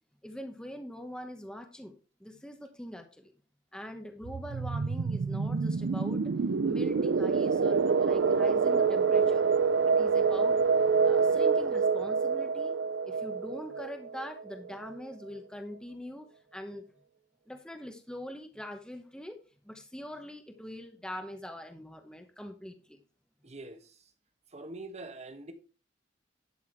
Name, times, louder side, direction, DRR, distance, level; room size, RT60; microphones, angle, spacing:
voice 1, 0.2-3.3 3.7-6.2 6.6-9.4 10.0-10.6 11.0-12.8 13.0-16.9 17.5-19.4 19.6-23.0, left 1 dB, 5° left, 1.0 m, -43 dB
sound 1, 4.2-14.7, right 5 dB, 70° right, 0.5 m, -27 dB
voice 2, 23.4-24.1 24.5-25.5, right 2 dB, 35° right, 1.3 m, -44 dB
11.0 x 6.0 x 4.5 m
head